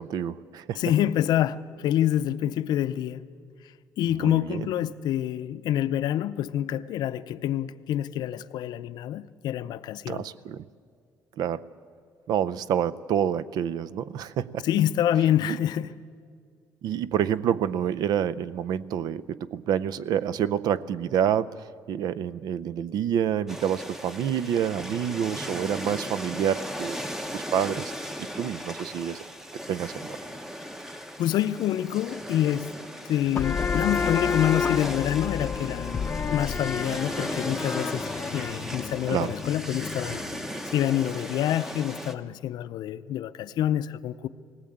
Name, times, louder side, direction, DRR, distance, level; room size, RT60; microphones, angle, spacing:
voice 1, 0.0-0.8 4.1-4.7 10.1-10.6 11.4-11.7 12.3-14.7 15.5-15.6 16.8-27.0 27.3-27.9 28.4-29.2 29.7-30.1 39.1-39.3, right 9 dB, 60° right, 0.5 m, -28 dB
voice 2, 0.8-3.3 4.0-10.3 14.6-15.9 31.2-32.7 33.1-35.9 36.3-40.2 40.7-44.3, left 11 dB, 65° left, 0.6 m, -27 dB
sound 1, 23.5-42.1, equal, 5° right, 0.8 m, -37 dB
sound 2, 33.3-40.6, left 6 dB, 25° left, 0.6 m, -30 dB
19.5 x 18.0 x 8.6 m
cardioid pair, 165°, 8 cm